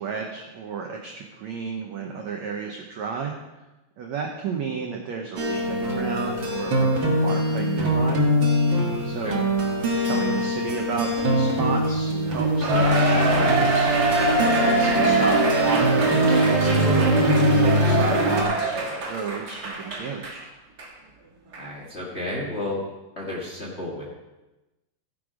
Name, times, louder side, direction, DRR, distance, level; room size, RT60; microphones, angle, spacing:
voice 1, 0.0-3.3 4.0-8.2 9.0-9.4 10.0-14.3 14.6-20.5, right 5 dB, 90° right, 1 dB, 1.5 m, -32 dB
sound 1, 5.4-18.4, equal, 50° right, 1.5 m, -22 dB
Cheering, 12.6-20.4 20.8-20.9 21.5-21.6, right 3 dB, 70° right, 0.9 m, -24 dB
voice 2, 21.6-22.8 23.1-24.0, left 1 dB, 70° left, -4 dB, 0.6 m, -32 dB
16.5 x 6.8 x 5.0 m, 1.0 s
omnidirectional pair, 4.6 m